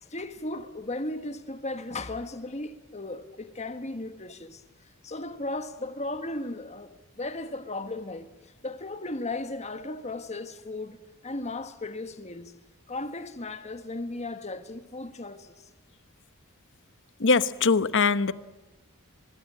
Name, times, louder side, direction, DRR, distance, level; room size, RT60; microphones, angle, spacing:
voice 1, 0.0-4.6 5.0-12.5 12.9-15.7, left 2 dB, 30° left, 1.5 m, -36 dB
voice 2, 17.2-18.3, left 4 dB, 55° left, 1.0 m, -22 dB
25.0 x 22.0 x 7.6 m
head